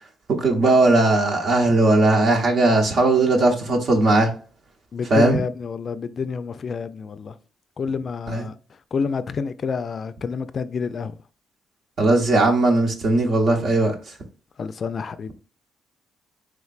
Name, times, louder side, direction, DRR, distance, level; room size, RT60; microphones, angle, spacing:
voice 1, 0.3-4.3 5.1-5.4 8.3-8.5 12.0-13.9, right 2 dB, 60° right, 0.8 m, -18 dB
voice 2, 4.9-7.3 7.8-8.5 8.9-11.1 14.6-15.3, left 5 dB, 45° left, 0.3 m, -28 dB
3.5 x 3.2 x 2.3 m
cardioid pair, 90°, 0 cm